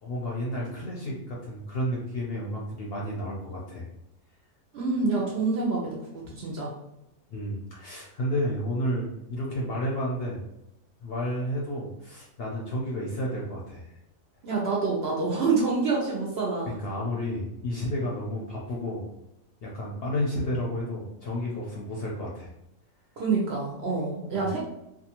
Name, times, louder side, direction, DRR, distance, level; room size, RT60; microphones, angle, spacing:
voice 1, 0.0-3.9 7.3-10.5 11.0-13.9 16.7-19.0 19.6-22.5 24.4-24.5, equal, 60° left, -3 dB, 0.7 m, -31 dB
voice 2, 4.7-6.7 14.4-16.8 23.2-24.6, right 4 dB, 60° right, -2 dB, 0.7 m, -27 dB
2.6 x 2.4 x 2.8 m, 0.85 s
omnidirectional pair, 1.5 m